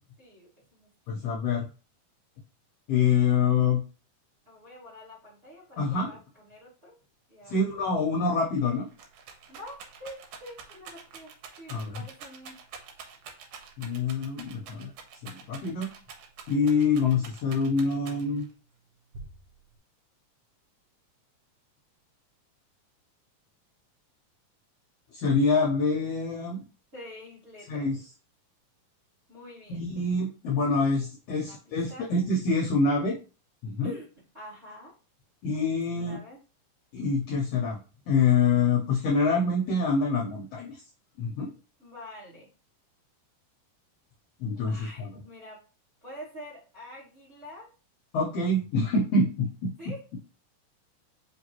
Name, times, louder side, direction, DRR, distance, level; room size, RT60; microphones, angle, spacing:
voice 1, 0.2-0.9 4.4-7.0 7.3-7.7 9.5-11.3 11.6-12.6 26.9-27.9 29.3-29.8 31.4-32.1 33.8-34.1 34.3-34.9 35.9-36.4 41.8-42.5 44.7-45.6 46.0-47.7 49.8-50.0, left 1 dB, 40° right, -5 dB, 0.8 m, -46 dB
voice 2, 1.1-1.7 2.9-3.8 5.8-6.1 7.5-8.9 11.7-12.0 13.8-14.9 15.2-15.9 16.5-18.4 25.1-26.6 27.7-28.0 29.7-33.2 33.6-33.9 35.4-36.2 36.9-37.8 38.1-40.8 41.2-41.5 44.4-45.1 48.1-49.7, left 4 dB, 75° left, -1 dB, 1.4 m, -26 dB
Rattle, 8.6-18.5 19.1-19.8, right 5 dB, 85° right, 2.3 m, -47 dB
5.1 x 2.9 x 2.9 m, 0.34 s
omnidirectional pair, 3.7 m